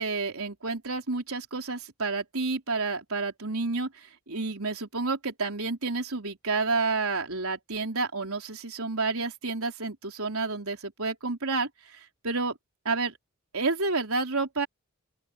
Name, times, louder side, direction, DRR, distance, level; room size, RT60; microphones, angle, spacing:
voice 1, 0.0-12.5 12.9-13.1 13.5-14.7, right 3 dB, 80° right, 3.7 m, -30 dB
open air
head